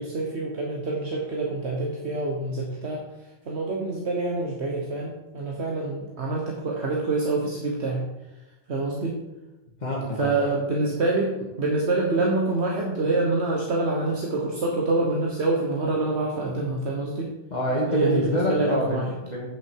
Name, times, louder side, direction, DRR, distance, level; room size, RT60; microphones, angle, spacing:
voice 1, 0.0-3.0 3.5-8.0 8.7-9.2 10.2-17.3 17.9-19.0, right 2 dB, 70° right, -1 dB, 1.4 m, -26 dB
voice 2, 9.8-10.5 17.5-19.5, equal, 40° left, -5 dB, 1.7 m, -27 dB
8.7 x 6.9 x 4.6 m, 1.0 s
omnidirectional pair, 1.2 m